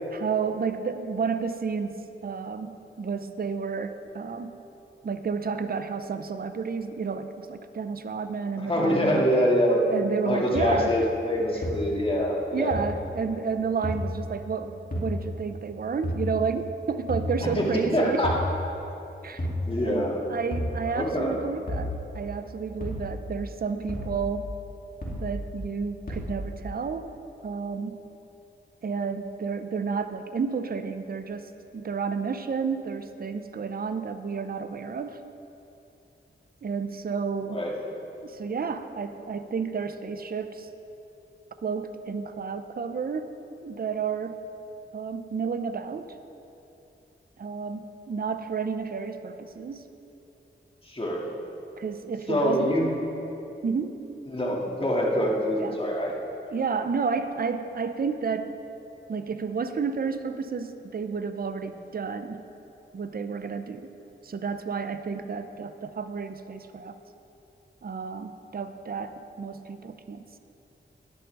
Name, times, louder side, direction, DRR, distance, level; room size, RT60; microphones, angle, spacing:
voice 1, 0.1-4.5 5.0-9.3 9.9-11.0 12.5-18.2 19.2-19.5 19.8-24.5 25.1-27.1 27.4-28.0 28.8-35.2 36.6-37.6 38.2-40.7 41.6-43.4 43.6-44.4 44.9-46.1 47.4-49.9 51.8-52.7 53.6-54.0 55.6-55.8 56.5-58.5 59.1-62.4 62.9-63.9 64.2-67.0 67.8-70.4, right 5 dB, 50° right, 9 dB, 0.5 m, -31 dB
voice 2, 8.6-9.8 10.2-12.7 17.4-18.4 19.7-20.2 20.9-21.4 37.5-37.7 50.8-51.2 52.3-52.9 54.3-56.1, equal, 25° left, -3 dB, 2.1 m, -25 dB
sound 1, 10.6-10.7 11.6-11.7 12.7-12.8 13.8-14.0 14.9-15.1 16.0-16.2 17.1-17.3 18.2-18.5 19.4-19.6 20.5-20.7 21.7-21.9 22.8-23.0 23.9-24.1 25.0-25.2 26.1-26.3, equal, 45° left, 2.6 m, -30 dB
10.5 x 10.5 x 3.4 m, 2.9 s
cardioid pair, 50°, 20 cm